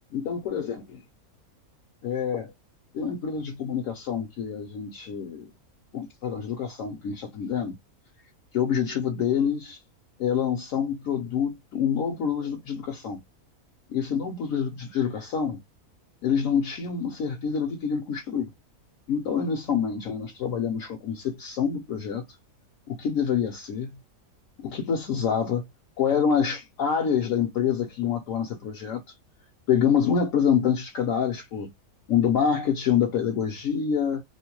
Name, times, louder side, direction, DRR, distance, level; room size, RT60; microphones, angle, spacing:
voice 1, 0.1-1.0 2.0-2.5 2.9-5.5 5.9-7.8 8.5-9.8 10.2-13.2 13.9-15.6 16.2-18.5 19.1-22.2 22.9-23.9 24.6-25.7 26.0-29.0 29.7-31.7 32.1-34.2, left 7 dB, 70° left, 1.0 m, -26 dB
2.7 x 2.1 x 2.9 m
omnidirectional pair, 1.5 m